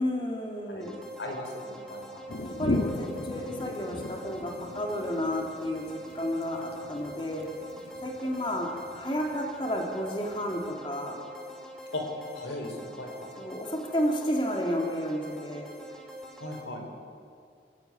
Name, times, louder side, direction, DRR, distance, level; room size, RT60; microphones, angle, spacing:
voice 1, 0.0-0.9 2.6-7.5 8.0-11.2 13.4-15.7, equal, 30° left, 1 dB, 2.9 m, -31 dB
voice 2, 0.7-2.2 11.9-12.0 12.3-13.3 16.4-16.9, left 1 dB, 85° left, 4 dB, 4.6 m, -38 dB
sound 1, 0.8-16.6, equal, 5° left, 3.0 m, -44 dB
sound 2, 2.3-10.7, left 2 dB, 60° left, 1.4 m, -38 dB
29.5 x 16.5 x 9.5 m, 2.3 s
head